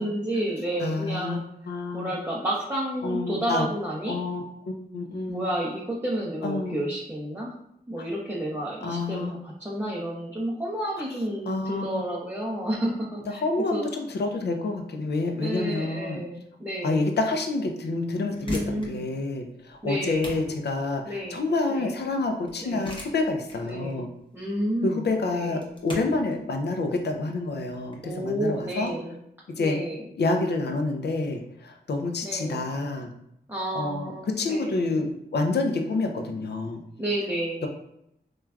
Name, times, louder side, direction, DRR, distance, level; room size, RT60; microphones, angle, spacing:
voice 1, 0.0-1.4 1.9-4.2 5.3-7.5 7.9-13.4 13.7-13.9 15.3-17.1 18.4-19.0 19.8-20.3 21.0-21.4 21.7-21.9 22.6-22.9 23.6-24.1 24.3-25.6 28.0-29.2 29.6-30.1 32.2-32.7 33.5-34.9 37.0-37.7, right 1 dB, 15° right, -6 dB, 0.6 m, -31 dB
voice 2, 0.8-1.4 1.7-2.1 3.0-3.7 4.1-5.5 6.4-6.8 8.8-9.3 11.5-12.0 13.3-16.2 16.8-24.1 24.8-28.9 29.6-29.8 30.2-33.1 33.7-36.8, left 3 dB, 70° left, 4 dB, 0.4 m, -28 dB
sound 1, 18.3-28.9, left 1 dB, 25° left, 0.8 m, -42 dB
3.1 x 2.3 x 2.3 m, 0.78 s
cardioid pair, 45°, 18 cm